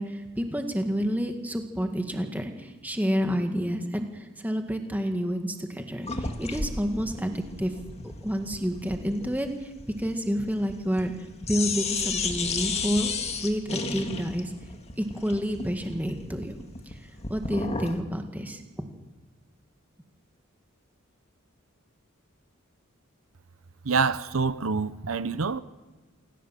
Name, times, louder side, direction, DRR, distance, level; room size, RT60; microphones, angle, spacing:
voice 1, 0.0-7.7 8.2-9.7 10.0-11.1 11.5-13.1 13.4-13.6 13.9-14.5 15.0-16.6 16.9-17.0 17.3-18.9, equal, 10° right, 1.9 m, -29 dB
sound 1, 6.0-11.2 11.4-18.0, left 4 dB, 30° left, 2.0 m, -33 dB
voice 2, 23.8-25.6, right 4 dB, 80° right, 0.8 m, -26 dB
27.5 x 17.5 x 7.5 m
head